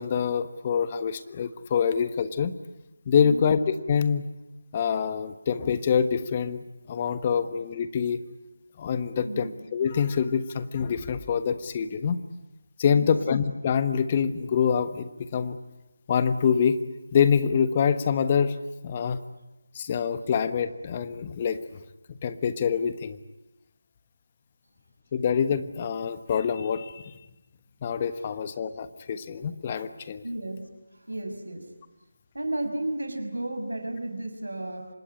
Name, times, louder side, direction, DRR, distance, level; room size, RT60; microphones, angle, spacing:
voice 1, 0.0-2.5 3.1-3.6 3.9-4.3 4.7-8.2 8.8-12.2 12.8-15.6 16.1-16.8 17.1-18.6 18.8-19.2 19.7-21.6 22.1-23.2 25.1-27.2 27.8-30.2, left 7 dB, 30° left, 12 dB, 1.2 m, -25 dB
voice 2, 3.2-3.5 7.2-7.5 9.2-9.5 12.9-13.1 30.2-30.6 30.9-31.7 32.3-34.9, right 1 dB, 80° right, 6 dB, 5.8 m, -33 dB
26.0 x 20.5 x 9.8 m, 0.95 s
figure-of-eight pair, 160°, 0 cm